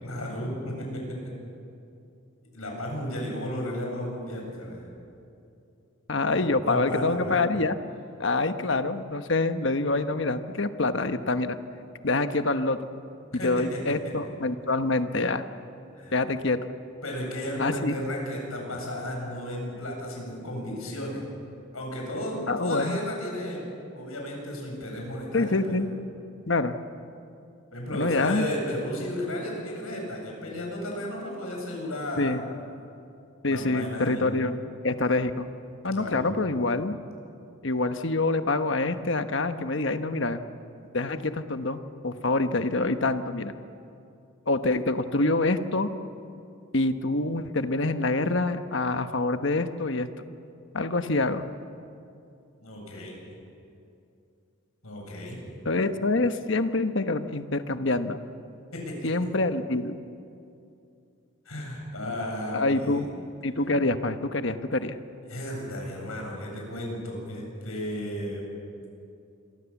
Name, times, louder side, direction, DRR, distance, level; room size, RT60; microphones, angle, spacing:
voice 1, 0.0-1.3 2.5-4.9 6.3-7.4 13.3-14.3 15.9-16.2 17.0-21.2 21.7-23.7 23.9-25.8 27.7-32.4 33.5-34.3 35.9-36.3 52.6-53.1 54.8-55.5 58.7-59.1 61.4-63.1 65.3-68.5, equal, 85° left, 0 dB, 7.8 m, -34 dB
voice 2, 6.1-7.8 8.2-11.6 12.0-12.8 13.4-15.4 16.1-16.6 17.6-17.9 22.5-23.0 25.3-25.9 26.5-26.7 27.9-28.5 32.2-32.4 33.4-34.6 34.8-35.5 35.8-37.0 37.6-40.4 40.9-43.5 44.5-45.9 46.7-50.1 50.7-51.5 55.6-58.2 59.0-60.0 62.5-63.0 63.4-64.9, left 2 dB, 60° left, 9 dB, 1.1 m, -26 dB
27.0 x 23.0 x 7.2 m, 2.6 s
head